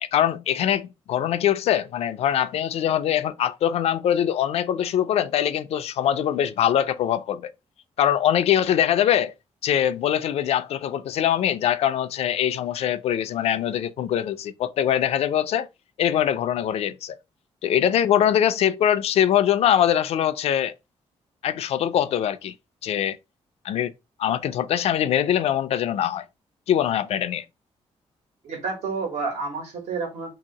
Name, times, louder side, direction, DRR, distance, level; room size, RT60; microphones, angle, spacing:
voice 1, 0.0-7.5 8.0-9.3 9.6-15.7 16.0-17.2 17.6-20.7 21.4-22.5 22.8-23.2 23.6-23.9 24.2-26.2 26.7-27.4, left 10 dB, 70° left, 0.4 m, -23 dB
voice 2, 28.4-30.3, right 4 dB, 90° right, 1.4 m, -30 dB
2.8 x 2.8 x 3.9 m
wide cardioid pair, 155°, 11 cm